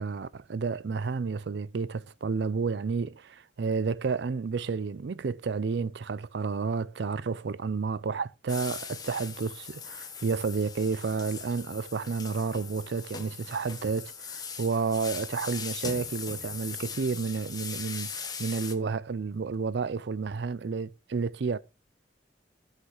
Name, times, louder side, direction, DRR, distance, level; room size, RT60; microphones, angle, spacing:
voice 1, 0.0-21.6, right 4 dB, 65° right, 0.4 m, -31 dB
sound 1, 8.5-18.7, left 6 dB, 20° left, 1.0 m, -40 dB
16.0 x 5.7 x 3.2 m
head